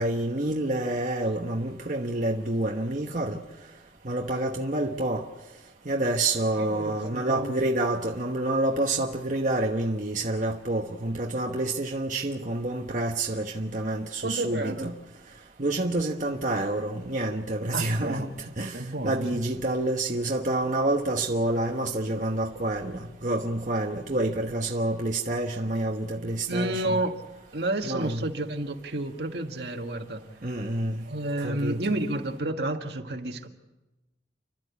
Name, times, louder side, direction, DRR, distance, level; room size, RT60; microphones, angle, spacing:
voice 1, 0.0-3.4 4.0-5.2 5.8-14.9 15.6-27.0 27.8-28.2 30.4-31.0 31.4-31.8, right 1 dB, 45° right, 1.1 m, -28 dB
voice 2, 6.6-7.5 14.2-14.9 17.7-18.3 18.7-19.4 26.5-27.2 27.5-30.2 31.1-33.5, right 1 dB, 65° right, 1.7 m, -30 dB
30.0 x 12.0 x 8.4 m
head